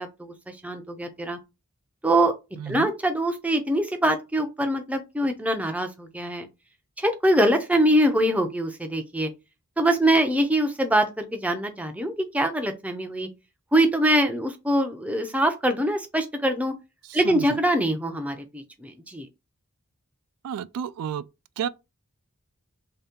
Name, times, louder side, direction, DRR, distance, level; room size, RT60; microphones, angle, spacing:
voice 1, 0.0-1.4 2.0-2.3 2.7-6.5 7.0-9.3 9.8-13.3 13.7-16.7 17.1-19.3, right 1 dB, 5° right, 0.4 m, -23 dB
voice 2, 2.6-2.9 17.0-17.6 20.4-21.2 21.6-21.7, right 8 dB, 85° right, 0.3 m, -32 dB
3.2 x 2.8 x 3.5 m
head